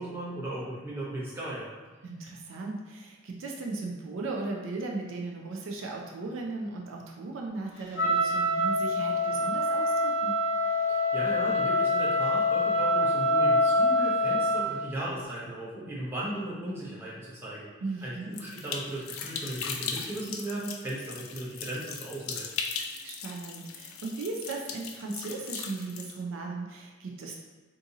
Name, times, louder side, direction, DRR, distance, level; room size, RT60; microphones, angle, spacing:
voice 1, 0.0-1.7 10.9-17.7 18.0-22.5, right 1 dB, 10° right, -8 dB, 0.7 m, -36 dB
voice 2, 2.0-10.3 17.8-18.3 23.0-27.3, right 3 dB, 70° right, 0 dB, 0.4 m, -37 dB
Wind instrument woodwind instrument, 8.0-14.8, left 1 dB, 60° left, 0.8 m, -25 dB
sound 1, 18.3-26.2, left 6 dB, 85° left, 0.4 m, -38 dB
2.7 x 2.5 x 3.8 m, 1.3 s
head